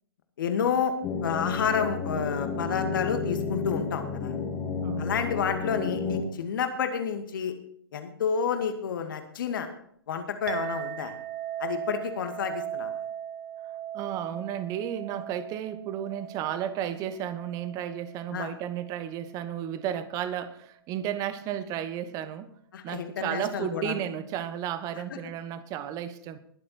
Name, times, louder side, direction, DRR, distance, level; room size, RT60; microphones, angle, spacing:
voice 1, 0.4-0.9 1.2-4.3 5.0-7.5 7.9-9.7 10.1-11.1 11.6-12.9 18.3-18.5 22.7-24.0 25.1-25.2, left 7 dB, 55° left, 6 dB, 2.2 m, -30 dB
sound 1, 1.0-6.2, left 4 dB, 25° left, 2.1 m, -31 dB
voice 2, 4.8-5.1 13.9-22.5 22.8-26.4, right 10 dB, 25° right, 13 dB, 1.2 m, -33 dB
Chink clink, 10.5-19.2, right 10 dB, 45° right, 1.1 m, -38 dB
21.0 x 7.7 x 4.4 m, 0.64 s
figure-of-eight pair, 120°, 13 cm